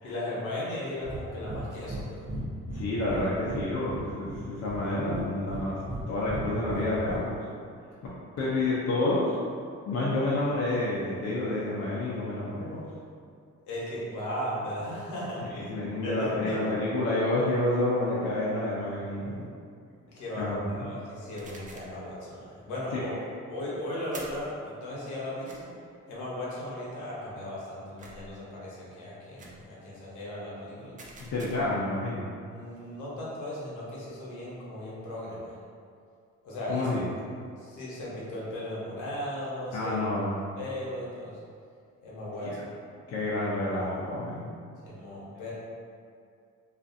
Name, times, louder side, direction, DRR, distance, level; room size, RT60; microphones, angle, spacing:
voice 1, 0.0-2.2 13.7-15.7 16.0-16.6 20.0-23.1 23.5-25.7 26.1-30.9 32.5-35.6 36.4-36.9 37.6-40.0 40.6-41.4 42.0-42.5 44.8-45.5, left 1 dB, 80° left, -7 dB, 0.9 m, -36 dB
Breathing, 1.0-1.2 1.4-2.0 2.3-3.6 3.9-4.8 5.1-6.0 6.3-7.2, right 2 dB, 60° right, 0.8 m, -36 dB
voice 2, 2.7-5.8 6.1-7.5 8.4-9.4 9.9-12.8 15.4-19.5 20.4-20.9 22.9-23.1 31.2-32.2 36.7-37.1 39.7-40.4 42.4-42.5 43.1-44.5, left 2 dB, 60° left, -7 dB, 0.5 m, -29 dB
sound 1, 21.4-22.0 24.1-24.5 25.4-25.6 28.0-28.4 29.4-29.6 31.0-31.8, right 2 dB, 25° right, 0.4 m, -47 dB
2.5 x 2.4 x 2.5 m, 2.3 s
cardioid pair, 90°, 30 cm